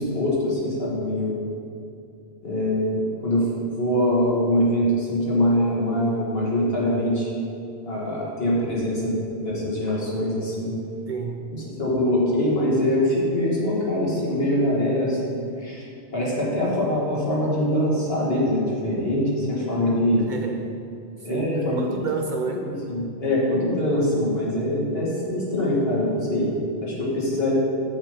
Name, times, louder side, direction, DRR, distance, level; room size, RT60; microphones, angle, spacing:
voice 1, 0.0-1.3 2.4-7.3 7.8-10.7 11.8-15.8 16.1-20.3 21.2-22.0 22.5-26.5 26.8-27.5, left 1 dB, 65° left, -5 dB, 2.1 m, -23 dB
voice 2, 11.1-11.5 20.3-20.7 21.2-21.4 21.8-22.7, right 4 dB, 55° right, 2 dB, 0.6 m, -30 dB
7.4 x 6.5 x 5.1 m, 2.5 s
omnidirectional pair, 1.1 m